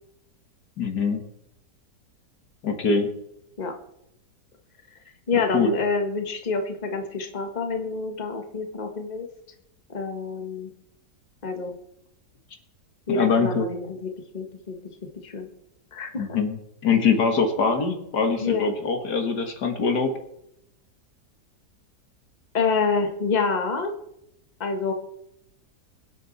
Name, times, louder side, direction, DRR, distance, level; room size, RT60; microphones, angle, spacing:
voice 1, 0.8-1.2 2.6-3.1 5.5-5.7 13.1-13.7 16.2-16.6 16.8-20.1, left 5 dB, 70° left, 5 dB, 2.2 m, -23 dB
voice 2, 5.3-9.3 9.9-10.7 11.4-11.7 13.1-14.8 15.1-15.5 15.9-16.4 18.4-18.7 22.5-23.9 24.6-24.9, left 4 dB, 25° left, 4 dB, 1.6 m, -27 dB
24.0 x 8.3 x 4.2 m, 0.80 s
omnidirectional pair, 1.8 m